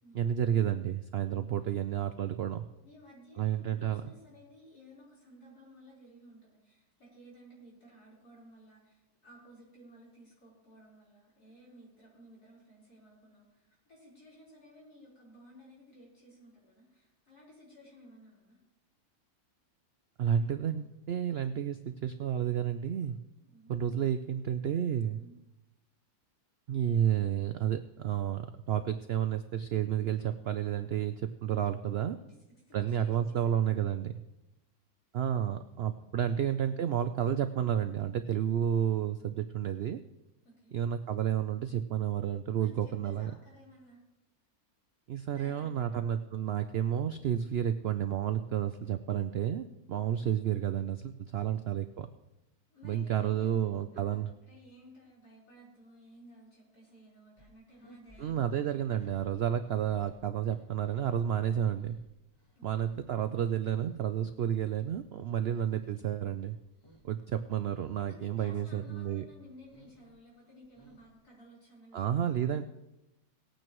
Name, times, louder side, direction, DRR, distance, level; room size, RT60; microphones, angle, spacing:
voice 1, 0.1-2.6 3.4-4.0 20.2-23.2 23.7-25.2 26.7-32.2 32.7-34.1 35.1-40.0 40.7-43.3 45.1-52.1 52.8-54.3 58.2-62.0 62.6-66.6 67.0-69.2 71.9-72.6, right 9 dB, 80° right, 10 dB, 0.5 m, -31 dB
voice 2, 2.8-18.6 20.4-20.9 23.4-23.7 25.2-25.3 32.2-32.4 32.7-33.8 36.2-36.4 40.4-40.8 42.5-44.0 45.3-46.2 49.7-50.3 51.4-51.7 52.7-53.6 53.9-58.8 62.5-63.0 65.3-65.5 67.2-67.3 68.0-72.6, equal, 90° left, -5 dB, 4.8 m, -56 dB
sound 1, 57.4-64.0 64.3-66.1 66.4-67.1 67.4-68.1 68.4-69.1 69.4-71.3, right 1 dB, 15° left, 1.5 m, -60 dB
19.5 x 9.0 x 3.1 m, 0.95 s
omnidirectional pair, 1.6 m